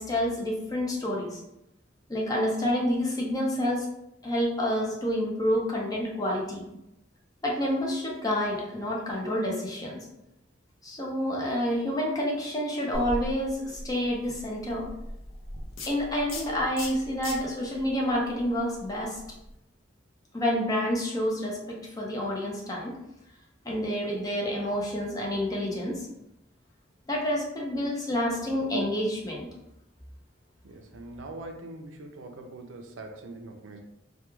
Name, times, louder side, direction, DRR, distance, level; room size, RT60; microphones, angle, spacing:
voice 1, 0.0-1.4 2.1-3.9 4.2-6.6 7.4-10.0 10.8-14.9 15.9-19.2 20.3-22.9 23.6-26.1 27.1-29.5, equal, 20° left, -3 dB, 0.5 m, -28 dB
sound 1, 12.9-19.6, left 1 dB, 80° left, 0.5 m, -40 dB
voice 2, 30.6-33.8, right 2 dB, 75° right, 4 dB, 0.4 m, -42 dB
2.3 x 2.2 x 3.0 m, 0.87 s
head